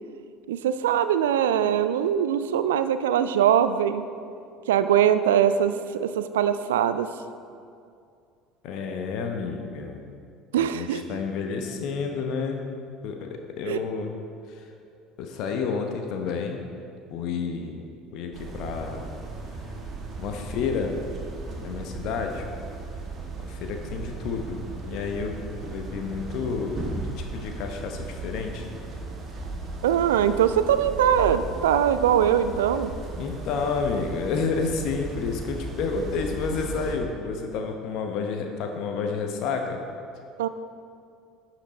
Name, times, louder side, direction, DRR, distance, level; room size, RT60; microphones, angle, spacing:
voice 1, 0.5-4.0 4.7-7.1 10.5-11.0 13.7-13.8 29.8-32.9 40.4-40.5, right 9 dB, 70° right, 12 dB, 0.4 m, -22 dB
voice 2, 8.6-10.0 10.6-12.6 13.0-14.1 14.5-14.6 15.2-16.6 17.1-17.9 18.1-19.1 20.2-21.0 21.6-22.4 23.4-25.4 25.6-28.6 33.1-39.8, left 5 dB, 55° left, 4 dB, 0.9 m, -30 dB
sound 1, 18.3-36.9, right 3 dB, 35° right, 1.5 m, -36 dB
11.5 x 6.0 x 4.1 m, 2.4 s
figure-of-eight pair, 65°, 0 cm